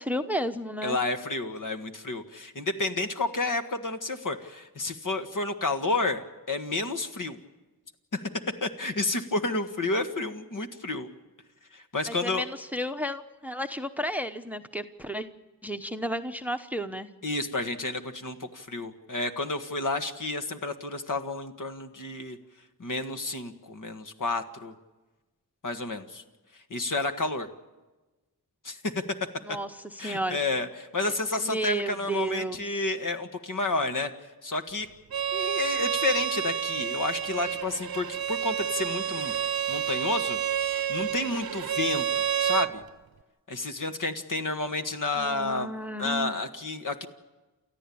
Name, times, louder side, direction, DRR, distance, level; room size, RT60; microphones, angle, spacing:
voice 1, 0.0-1.0 12.1-15.3 15.6-17.1 29.5-30.4 31.4-32.9 45.1-46.3, equal, 5° right, 9 dB, 0.9 m, -32 dB
voice 2, 0.8-6.2 6.5-7.4 8.1-8.2 8.6-11.1 11.7-12.5 17.2-22.4 22.8-24.7 25.6-26.2 26.7-27.5 28.6-29.0 30.0-34.1 34.4-34.9 35.3-39.3 39.7-40.4 40.9-42.8 43.5-45.7 46.0-47.1, left 2 dB, 55° left, 7 dB, 1.7 m, -30 dB
Bowed string instrument, 35.1-42.7, right 9 dB, 75° right, 0.8 m, -29 dB
29.0 x 13.5 x 8.7 m, 1.2 s
wide cardioid pair, 65°, 37 cm